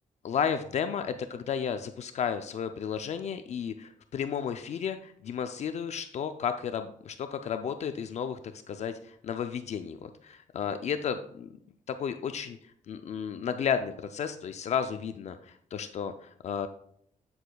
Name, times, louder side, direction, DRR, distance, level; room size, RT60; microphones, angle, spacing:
voice 1, 0.2-11.5 11.9-12.6 12.9-16.7, left 7 dB, 55° left, 9 dB, 0.4 m, -33 dB
8.6 x 7.9 x 2.3 m, 0.67 s
wide cardioid pair, 170°, 14 cm